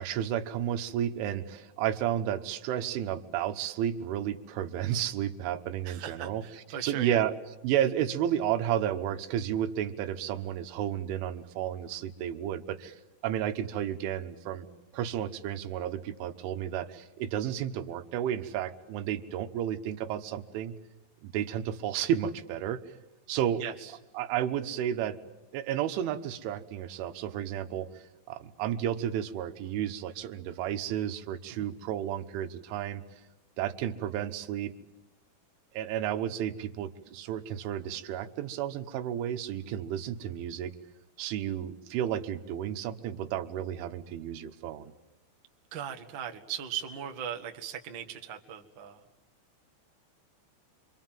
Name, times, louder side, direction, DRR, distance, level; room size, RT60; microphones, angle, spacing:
voice 1, 0.0-6.4 6.8-7.4 7.6-13.0 13.2-14.7 14.9-20.7 21.2-22.8 23.3-23.6 24.2-25.2 25.5-27.9 28.3-33.0 33.6-34.7 35.8-40.8 41.2-44.9, right 10 dB, 90° right, 8 dB, 3.6 m, -32 dB
voice 2, 5.8-7.2 23.6-23.9 31.5-31.7 45.7-49.0, right 8 dB, 70° right, 4 dB, 1.1 m, -39 dB
28.0 x 25.0 x 7.5 m, 1.0 s
omnidirectional pair, 5.3 m